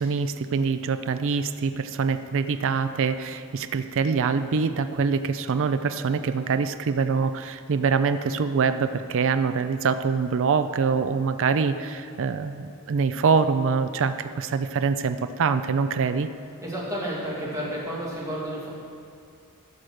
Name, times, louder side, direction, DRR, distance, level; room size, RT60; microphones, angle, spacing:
voice 1, 0.0-16.3, right 5 dB, 60° right, 10 dB, 0.4 m, -24 dB
voice 2, 16.6-18.7, equal, 15° right, -6 dB, 2.5 m, -31 dB
14.0 x 5.1 x 6.4 m, 2.4 s
head